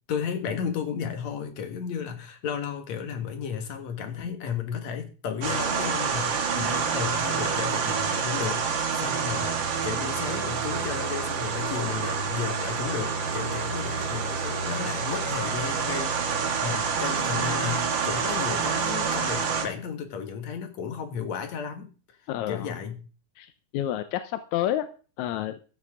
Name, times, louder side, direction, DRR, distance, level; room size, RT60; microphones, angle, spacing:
voice 1, 0.1-9.6 9.8-21.9 22.5-23.0, left 7 dB, 60° left, 6 dB, 2.7 m, -33 dB
sound 1, 5.4-19.6, right 5 dB, 50° right, 1.6 m, -28 dB
voice 2, 22.3-22.7 23.4-24.9 25.2-25.5, left 12 dB, 75° left, 10 dB, 1.8 m, -29 dB
14.0 x 10.0 x 3.7 m, 0.36 s
omnidirectional pair, 3.8 m